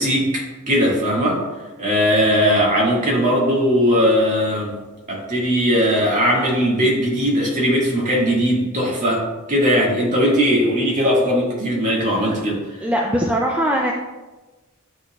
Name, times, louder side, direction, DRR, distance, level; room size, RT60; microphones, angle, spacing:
voice 1, 0.0-1.4 1.8-4.8 5.1-12.6, equal, 35° right, -4 dB, 2.0 m, -19 dB
voice 2, 12.8-13.9, equal, 5° right, -1 dB, 0.5 m, -20 dB
11.5 x 4.2 x 2.4 m, 1.2 s
head